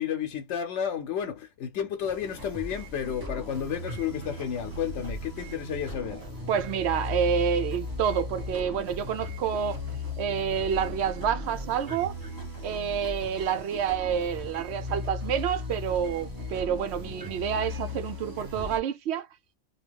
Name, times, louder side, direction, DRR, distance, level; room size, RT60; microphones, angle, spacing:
voice 1, 0.0-6.3, left 8 dB, 85° left, 1.0 m, -32 dB
sound 1, 2.0-18.8, left 2 dB, 20° right, 0.8 m, -37 dB
voice 2, 6.5-9.8 10.2-12.1 12.6-19.3, right 8 dB, 75° right, 0.8 m, -28 dB
2.8 x 2.3 x 3.4 m
omnidirectional pair, 1.2 m